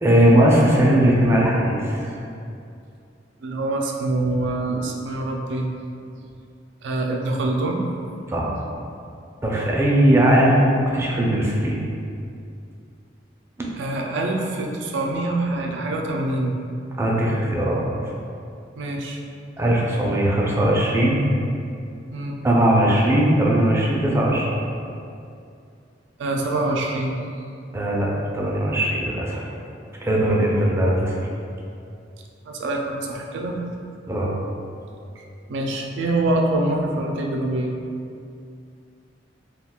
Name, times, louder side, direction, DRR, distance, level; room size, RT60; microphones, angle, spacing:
voice 1, 0.0-2.1 8.3-8.5 9.4-11.8 13.6-13.7 17.0-17.8 19.6-21.2 22.4-24.5 27.7-29.5 30.0-31.1 34.1-34.3, right 1 dB, 15° right, -4 dB, 0.4 m, -19 dB
voice 2, 3.4-5.7 6.8-7.8 13.8-16.6 18.8-19.2 22.1-22.4 26.2-27.2 32.5-33.6 35.2-37.8, right 2 dB, 85° right, 1 dB, 0.4 m, -25 dB
2.3 x 2.2 x 3.5 m, 2.5 s
head